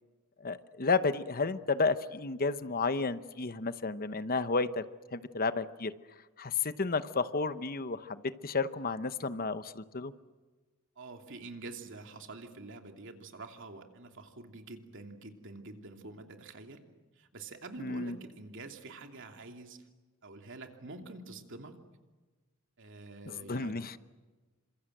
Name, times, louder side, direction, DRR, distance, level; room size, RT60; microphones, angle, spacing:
voice 1, 0.4-4.8 5.1-5.9 6.4-10.1 17.8-18.2 23.3-24.0, left 4 dB, 45° left, 12 dB, 0.9 m, -32 dB
voice 2, 11.0-16.8 17.2-19.8 20.2-21.8 22.8-24.0, right 3 dB, 60° right, 4 dB, 2.8 m, -47 dB
29.0 x 26.0 x 7.9 m, 1.3 s
head